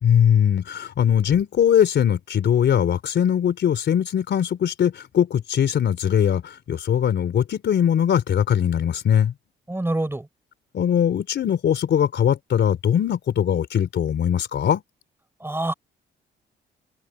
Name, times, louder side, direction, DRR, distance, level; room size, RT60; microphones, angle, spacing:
voice 1, 0.0-9.3 10.7-14.8, left 9 dB, 65° left, 4.0 m, -21 dB
voice 2, 9.7-10.3 15.4-15.7, right 1 dB, 10° right, 6.2 m, -26 dB
open air
cardioid pair, 90°, 20 cm